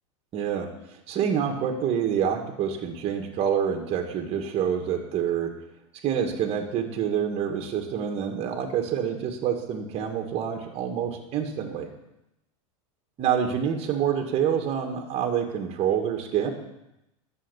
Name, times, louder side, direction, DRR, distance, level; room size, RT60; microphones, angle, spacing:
voice 1, 0.3-0.7 1.1-5.5 6.0-11.9 13.2-16.5, right 8 dB, 35° right, 3 dB, 2.0 m, -27 dB
11.5 x 7.2 x 7.1 m, 0.89 s
hypercardioid pair, 120°, 18 cm